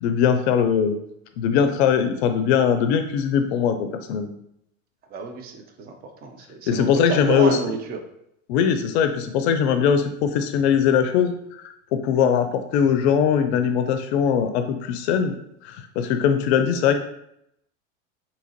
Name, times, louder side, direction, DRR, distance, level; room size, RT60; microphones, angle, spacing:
voice 1, 0.0-1.0 1.4-3.7 4.1-4.3 6.7-7.6 8.5-11.3 11.6-11.7 12.0-15.3 15.6-17.0, left 7 dB, 60° left, 7 dB, 0.5 m, -20 dB
voice 2, 5.1-5.9 6.2-8.0, right 4 dB, 25° right, 5 dB, 0.5 m, -30 dB
3.7 x 2.8 x 2.9 m, 0.76 s
hypercardioid pair, 90°, 38 cm